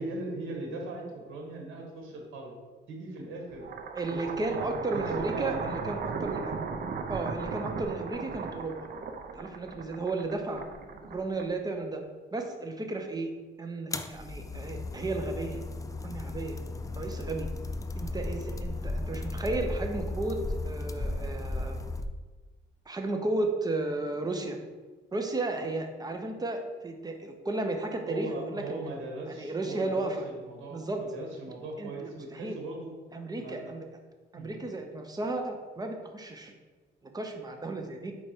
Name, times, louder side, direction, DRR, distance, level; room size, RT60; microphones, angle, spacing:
voice 1, 0.0-2.5 2.9-3.7 4.1-5.8 16.8-17.0 28.1-33.0 33.4-33.7 34.3-34.5, right 2 dB, 80° right, 0 dB, 1.5 m, -39 dB
sound 1, 3.5-11.8, right 5 dB, 50° right, 0.6 m, -37 dB
voice 2, 4.0-6.6 7.1-8.9 9.3-10.7 11.0-12.0 12.3-13.3 13.6-15.6 16.0-16.6 16.9-17.5 18.0-21.8 22.9-24.6 25.1-28.9 29.3-30.3 30.7-31.0 31.8-32.6 33.1-33.9 34.3-36.5 37.0-38.1, right 2 dB, 20° right, 4 dB, 0.9 m, -34 dB
sound 2, 13.9-22.1, left 2 dB, 15° left, 0.4 m, -35 dB
4.7 x 4.5 x 4.5 m, 1.3 s
cardioid pair, 90°, 20 cm